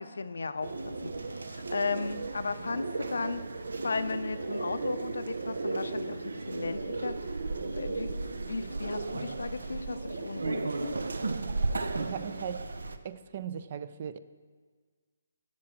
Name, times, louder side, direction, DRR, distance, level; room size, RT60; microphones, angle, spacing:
voice 1, 0.0-3.4 3.8-7.4 7.7-11.0, left 4 dB, 85° left, 11 dB, 0.6 m, -36 dB
sound 1, 0.6-13.0, right 3 dB, 90° right, 0.6 m, -35 dB
voice 2, 11.9-12.7 13.0-14.2, right 8 dB, 35° right, 13 dB, 0.4 m, -38 dB
7.5 x 7.4 x 6.2 m, 1.5 s
hypercardioid pair, 165°, 0 cm